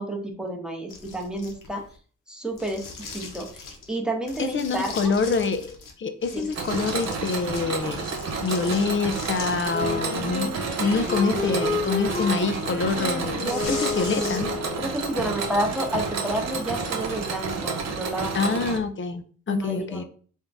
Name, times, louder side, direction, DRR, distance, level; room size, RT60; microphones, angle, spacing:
voice 1, 0.0-1.8 2.3-5.1 6.3-6.5 13.4-13.8 14.1-14.3 14.8-18.6 19.5-20.0, right 1 dB, 5° right, 1 dB, 0.9 m, -30 dB
sound 1, 0.9-1.9 2.5-3.9 4.3-5.9 6.2-9.7 10.1-14.7, left 4 dB, 80° left, 0.9 m, -41 dB
voice 2, 4.4-8.1 8.4-14.5 18.3-20.0, left 4 dB, 40° left, 9 dB, 0.5 m, -26 dB
Mechanisms, 6.5-18.8, right 4 dB, 55° right, 0.8 m, -30 dB
Wind instrument woodwind instrument, 9.7-14.9, left 4 dB, 20° left, 1.1 m, -30 dB
3.6 x 2.7 x 3.4 m, 0.43 s
cardioid pair, 85°, 32 cm